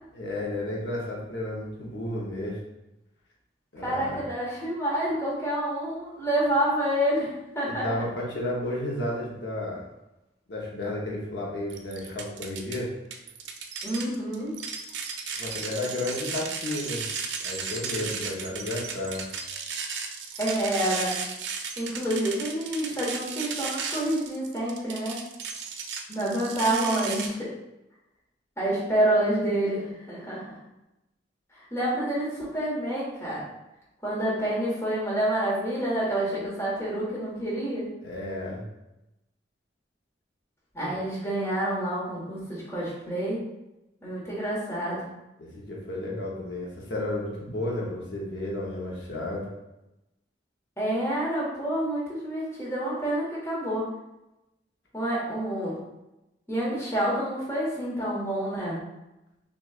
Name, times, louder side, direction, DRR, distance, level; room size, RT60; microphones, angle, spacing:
voice 1, 0.1-2.6 3.7-4.2 7.7-9.9 10.5-12.9 15.4-17.0 17.4-19.2 38.0-38.6 45.4-49.5, left 1 dB, 70° left, -4 dB, 0.8 m, -32 dB
voice 2, 3.8-7.3 7.5-7.8 13.8-14.5 20.4-21.1 21.8-25.2 26.1-27.5 28.6-30.6 31.7-33.4 34.0-37.9 40.7-43.4 44.0-45.0 50.8-53.9 54.9-55.8 56.5-58.8, right 1 dB, 15° left, -7 dB, 1.3 m, -28 dB
sound 1, 11.7-12.8 13.1-27.3, right 5 dB, 75° right, 0.5 m, -35 dB
6.0 x 2.4 x 2.4 m, 0.94 s
head